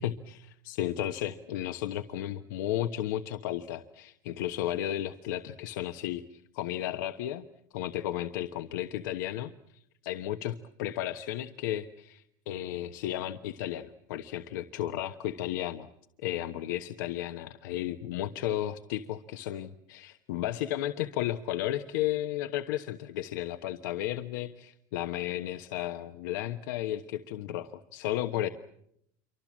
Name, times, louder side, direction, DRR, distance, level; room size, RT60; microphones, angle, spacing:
voice 1, 0.0-7.5 7.7-9.5 10.0-15.9 16.2-28.5, left 12 dB, 75° left, 8 dB, 1.2 m, -34 dB
27.5 x 25.0 x 7.5 m, 0.74 s
supercardioid pair, 145°, 10 cm